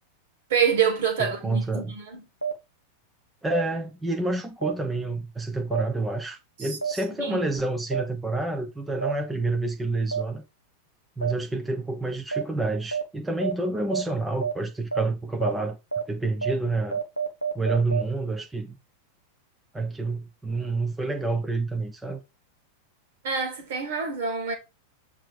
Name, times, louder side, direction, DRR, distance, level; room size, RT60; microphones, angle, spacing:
voice 1, 0.5-2.2 6.6-6.7 7.2-7.4 23.2-24.5, right 7 dB, 55° right, 2.2 m, -26 dB
voice 2, 1.2-2.0 3.4-10.4 11.2-15.8 16.1-17.0 17.5-18.8 19.7-22.2, right 2 dB, 10° right, 1.0 m, -28 dB
sound 1, 2.4-2.5 3.5-3.6 4.6-4.7 5.7-5.8 6.8-6.9 7.9-8.0 9.0-9.1 10.1-10.2 11.2-11.3 12.3-12.4 12.9-13.0 13.4-13.5 13.9-14.0 14.4-14.5 14.9-15.0 15.4-15.5 15.9-16.0 16.4-16.5 16.9-18.0, right 6 dB, 90° right, 0.7 m, -27 dB
7.5 x 3.3 x 4.9 m
figure-of-eight pair, 90°, 0 cm